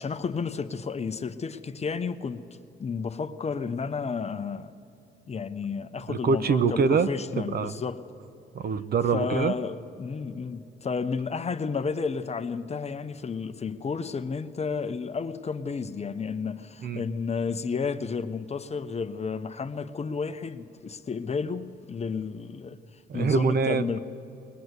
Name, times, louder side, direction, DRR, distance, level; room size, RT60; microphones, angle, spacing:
voice 1, 0.0-4.7 5.3-8.0 9.1-24.0, left 5 dB, 35° left, 0.8 m, -32 dB
voice 2, 6.1-7.1 7.4-7.7 8.5-9.5 16.8-17.0 23.1-24.0, right 5 dB, 50° right, 0.9 m, -24 dB
20.0 x 20.0 x 8.1 m
cardioid pair, 90°, 20 cm